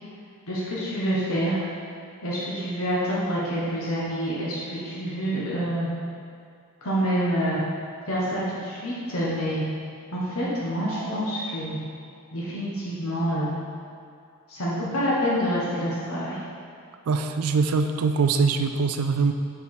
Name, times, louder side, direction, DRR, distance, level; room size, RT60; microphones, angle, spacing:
voice 1, 0.5-1.6 2.2-5.9 6.8-7.6 8.1-9.6 10.1-11.8 12.3-13.5 14.5-16.4, equal, 75° left, -7 dB, 1.3 m, -27 dB
sound 1, 10.7-12.2, right 2 dB, 20° right, 0.8 m, -40 dB
voice 2, 17.1-19.3, right 4 dB, 80° right, 7 dB, 0.4 m, -23 dB
5.5 x 4.6 x 5.8 m, 2.3 s
head